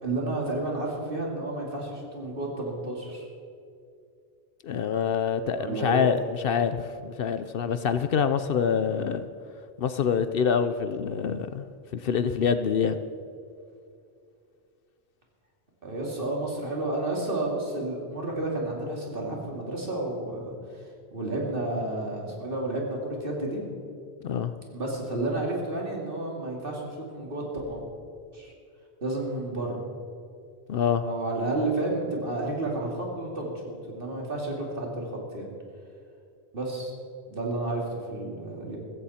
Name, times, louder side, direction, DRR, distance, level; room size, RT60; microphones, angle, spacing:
voice 1, 0.0-3.3 5.5-6.0 15.8-23.6 24.7-27.9 28.3-28.5 29.0-29.8 31.0-35.5 36.5-36.9 37.3-38.8, right 2 dB, 55° right, -1 dB, 2.8 m, -31 dB
voice 2, 4.6-9.3 9.8-11.7 11.9-13.0 24.2-24.5 30.7-31.0, left 7 dB, 65° left, 11 dB, 0.7 m, -26 dB
15.5 x 15.0 x 4.3 m, 2.4 s
omnidirectional pair, 1.1 m